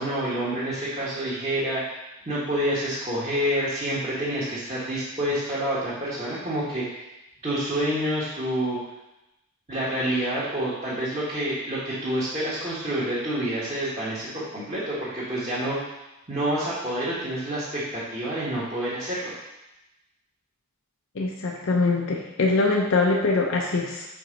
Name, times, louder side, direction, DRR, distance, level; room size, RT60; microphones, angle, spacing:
voice 1, 0.0-1.8 2.3-6.8 7.4-8.8 9.7-15.8 16.3-19.3, right 1 dB, 30° right, -11 dB, 1.5 m, -28 dB
voice 2, 21.2-24.1, left 3 dB, 60° left, 0 dB, 0.6 m, -23 dB
5.2 x 4.2 x 5.2 m, 0.94 s
head